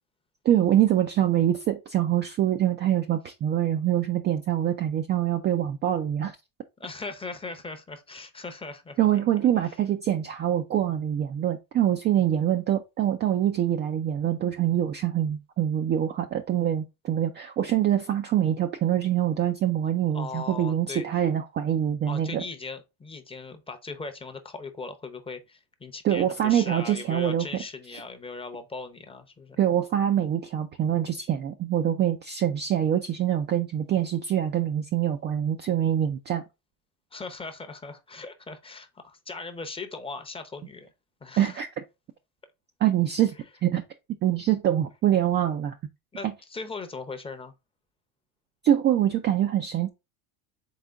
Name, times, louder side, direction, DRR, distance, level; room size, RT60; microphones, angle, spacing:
voice 1, 0.4-6.3 9.0-22.4 26.0-27.5 29.6-36.4 41.4-41.7 42.8-43.3 43.6-43.8 44.2-45.7 48.6-49.9, right 11 dB, 25° right, 0.3 m, -24 dB
voice 2, 6.8-9.0 9.6-9.8 20.1-21.0 22.1-29.6 37.1-40.9 41.2-41.6 46.1-47.5, left 3 dB, 10° left, 0.7 m, -39 dB
3.8 x 3.6 x 3.4 m
supercardioid pair, 100°, 44 cm